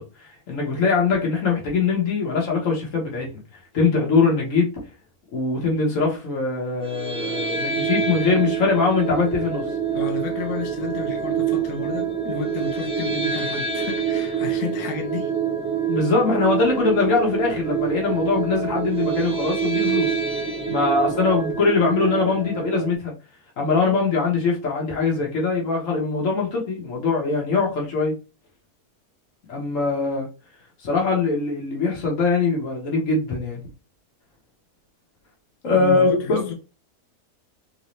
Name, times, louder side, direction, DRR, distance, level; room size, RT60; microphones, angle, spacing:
voice 1, 0.0-3.4 3.7-4.7 5.3-9.7 15.9-20.2 20.7-23.1 23.6-28.2 29.5-30.3 30.8-33.6 35.6-36.5, left 4 dB, 60° left, 1.6 m, -22 dB
sound 1, 6.8-23.0, right 7 dB, 5° right, 0.5 m, -26 dB
voice 2, 9.9-15.3 35.7-36.5, left 5 dB, 80° left, 1.2 m, -32 dB
4.0 x 2.7 x 3.1 m
omnidirectional pair, 1.6 m